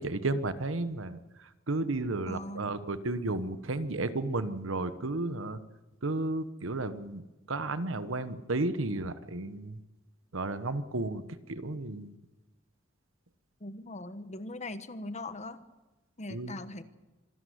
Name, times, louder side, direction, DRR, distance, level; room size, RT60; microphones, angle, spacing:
voice 1, 0.0-5.6 6.0-7.2 7.5-9.8 10.3-11.2 11.5-12.1 16.3-16.6, right 2 dB, 85° right, 12 dB, 1.2 m, -33 dB
voice 2, 2.3-2.7 13.6-15.6 16.2-16.8, left 2 dB, 35° left, 12 dB, 1.2 m, -40 dB
25.0 x 13.0 x 9.4 m, 1.2 s
head